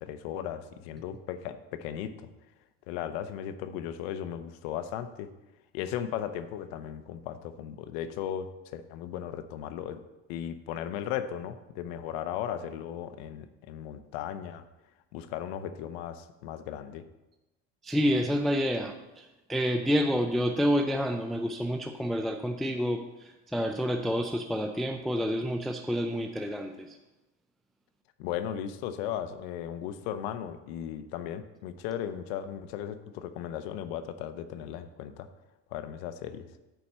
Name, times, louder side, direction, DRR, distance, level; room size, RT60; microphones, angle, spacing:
voice 1, 0.0-2.3 2.9-5.3 5.7-8.5 8.7-10.0 10.3-14.6 15.1-17.0 28.2-35.3 35.7-36.5, left 10 dB, 85° left, 11 dB, 0.8 m, -36 dB
voice 2, 17.8-27.0, equal, ahead, 4 dB, 0.4 m, -29 dB
9.1 x 4.2 x 6.6 m, 1.0 s
supercardioid pair, 125°, 30 cm